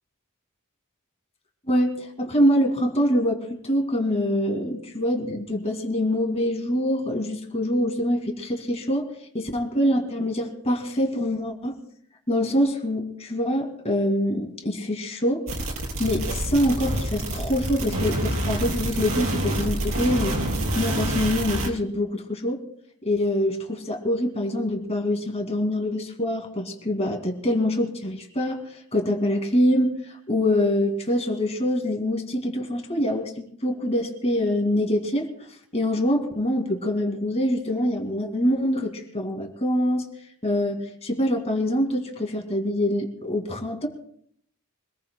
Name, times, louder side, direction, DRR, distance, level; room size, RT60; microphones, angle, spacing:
voice 1, 1.7-11.8 12.3-15.5 16.0-20.4 20.8-22.6 23.0-35.3 35.7-40.1 40.4-43.9, left 1 dB, 30° left, 3 dB, 2.2 m, -25 dB
sound 1, 15.5-21.7, right 1 dB, 65° right, 3.3 m, -27 dB
25.0 x 20.0 x 2.2 m, 0.65 s
head